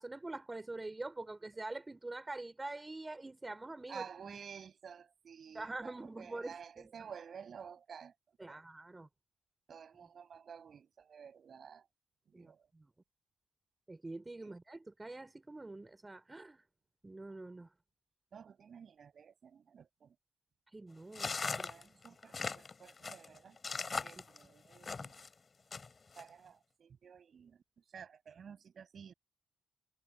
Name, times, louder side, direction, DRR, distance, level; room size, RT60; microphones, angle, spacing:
voice 1, 0.0-4.4 5.5-6.9 8.4-9.1 12.3-12.9 13.9-16.6 17.0-17.7 20.7-22.0, right 2 dB, 25° right, 3.6 m, -45 dB
voice 2, 3.9-8.1 8.5-8.6 9.7-11.8 12.3-12.7 14.4-14.5 18.3-20.1 21.6-23.6 24.0-25.2 26.2-29.1, right 7 dB, 60° right, 7.5 m, -52 dB
sound 1, 21.1-25.3 25.7-26.2, left 4 dB, 40° left, 5.5 m, -39 dB
supercardioid pair, 55°, 0 cm